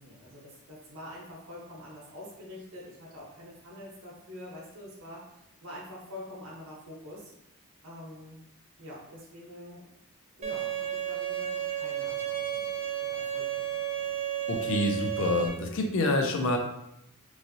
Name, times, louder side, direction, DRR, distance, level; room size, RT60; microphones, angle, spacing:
voice 1, 0.0-7.3 7.8-8.4 8.8-9.9 10.4-12.7 13.0-14.1, left 1 dB, 75° right, -5 dB, 0.8 m, -46 dB
Bowed string instrument, 10.4-15.5, right 10 dB, 30° right, 0.4 m, -32 dB
voice 2, 14.5-16.6, left 2 dB, 60° left, 3 dB, 0.5 m, -27 dB
3.1 x 2.5 x 2.6 m, 0.81 s
head